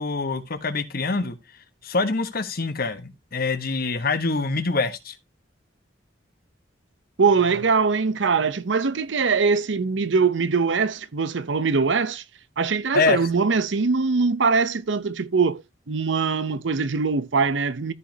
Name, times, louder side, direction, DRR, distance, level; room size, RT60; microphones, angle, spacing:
voice 1, 0.0-1.4 1.8-5.1 12.9-13.2, left 3 dB, 55° left, 1.2 m, -25 dB
voice 2, 7.2-12.2 12.6-15.6 15.9-17.9, right 4 dB, 75° right, 0.7 m, -22 dB
14.0 x 5.2 x 2.8 m
head